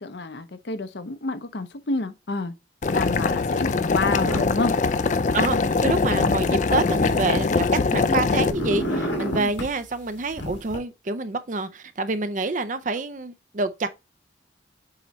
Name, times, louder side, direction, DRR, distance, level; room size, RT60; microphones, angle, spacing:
voice 1, 0.0-2.5 2.9-4.7 9.4-9.5, left 3 dB, 65° left, 0.7 m, -29 dB
Boiling, 2.8-8.5, left 4 dB, 40° left, 0.4 m, -22 dB
sound 1, 3.9-4.6 4.9-5.8 6.4-8.1 8.3-9.7 10.3-10.8, equal, 90° left, 2.0 m, -30 dB
voice 2, 5.3-13.9, right 3 dB, 40° right, 0.5 m, -27 dB
7.7 x 3.1 x 4.1 m
head